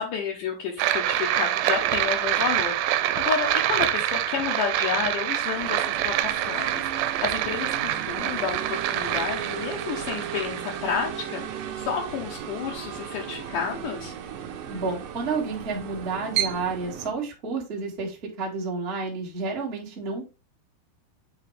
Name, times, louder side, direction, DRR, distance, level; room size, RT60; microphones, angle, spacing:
voice 1, 0.0-11.4 11.8-14.1, left 7 dB, 75° left, -1 dB, 2.0 m, -31 dB
sound 1, 0.8-11.7, right 12 dB, 90° right, 2.7 m, -26 dB
sound 2, 5.5-17.1, right 9 dB, 70° right, 2.1 m, -35 dB
voice 2, 14.7-20.2, right 4 dB, 40° right, -3 dB, 0.8 m, -30 dB
8.0 x 3.9 x 3.2 m, 0.29 s
omnidirectional pair, 4.7 m